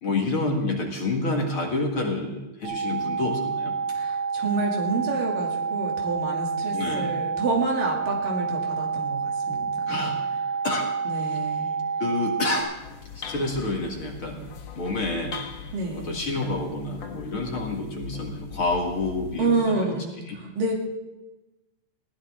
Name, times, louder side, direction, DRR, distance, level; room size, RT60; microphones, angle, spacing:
voice 1, 0.0-3.7 6.7-7.2 9.9-10.2 10.6-10.9 11.2-11.4 12.0-12.7 13.1-15.4 15.9-19.9 20.3-20.4, left 2 dB, 45° left, 1 dB, 2.3 m, -28 dB
sound 1, 2.6-12.6, right 5 dB, 70° right, 5.8 m, -28 dB
voice 2, 3.9-10.0 11.1-11.7 15.7-16.2 19.4-20.7, right 3 dB, 85° right, -1 dB, 4.4 m, -28 dB
sound 2, 12.6-19.6, left 6 dB, 70° left, 1.1 m, -40 dB
20.0 x 16.0 x 3.7 m, 1.1 s
omnidirectional pair, 3.8 m